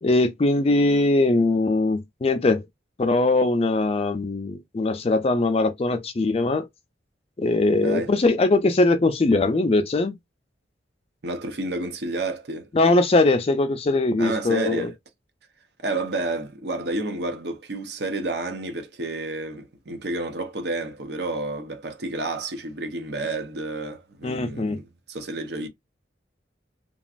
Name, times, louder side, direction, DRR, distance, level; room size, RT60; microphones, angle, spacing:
voice 1, 0.0-2.6 3.0-6.7 7.4-10.1 12.7-14.9 24.2-24.8, left 2 dB, 30° left, 0.4 m, -21 dB
voice 2, 7.8-8.1 11.2-12.7 14.2-14.9 15.8-25.7, right 2 dB, 60° right, 0.7 m, -30 dB
3.0 x 2.4 x 2.4 m
head